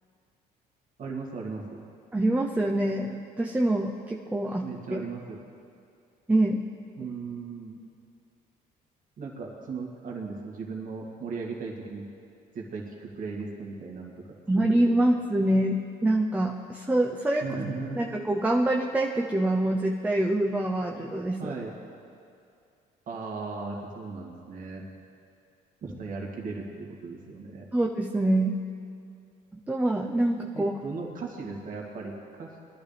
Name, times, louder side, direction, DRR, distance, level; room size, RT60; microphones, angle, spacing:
voice 1, 1.0-1.8 4.6-5.4 7.0-7.8 9.2-12.0 12.5-14.4 14.7-14.9 17.4-18.1 21.4-21.7 23.1-24.8 25.8-27.7 30.5-32.5, right 4 dB, 50° right, -2 dB, 2.4 m, -37 dB
voice 2, 2.1-5.0 6.3-6.6 14.5-17.4 18.0-21.5 27.7-28.6 29.7-30.7, right 1 dB, 10° right, 1 dB, 0.7 m, -25 dB
22.0 x 11.5 x 3.5 m, 2.4 s
cardioid pair, 110°, 17 cm